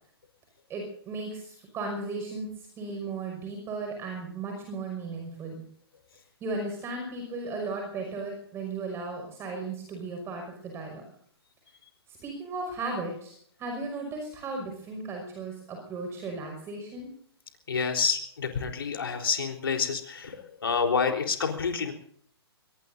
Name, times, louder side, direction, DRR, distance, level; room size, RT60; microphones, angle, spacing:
voice 1, 0.7-5.6 6.4-11.0 12.1-17.1, right 3 dB, 20° right, 2 dB, 5.7 m, -36 dB
voice 2, 17.7-21.9, left 5 dB, 60° left, 4 dB, 3.9 m, -28 dB
24.0 x 21.5 x 2.7 m, 0.64 s
figure-of-eight pair, 120°, 14 cm